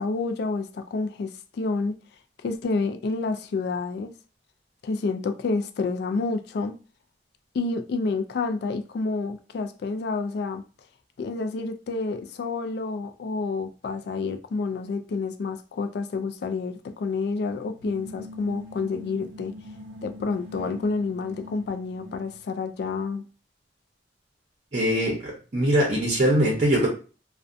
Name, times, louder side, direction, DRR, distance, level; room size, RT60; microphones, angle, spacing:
voice 1, 0.0-1.9 2.4-4.1 4.8-6.7 7.5-10.6 11.2-19.5 20.0-23.2, left 4 dB, 60° left, 0.3 m, -29 dB
sound 1, 17.7-22.5, left 2 dB, 80° right, 0.5 m, -43 dB
voice 2, 24.7-26.9, equal, 40° right, 0.6 m, -22 dB
2.5 x 2.1 x 2.5 m
head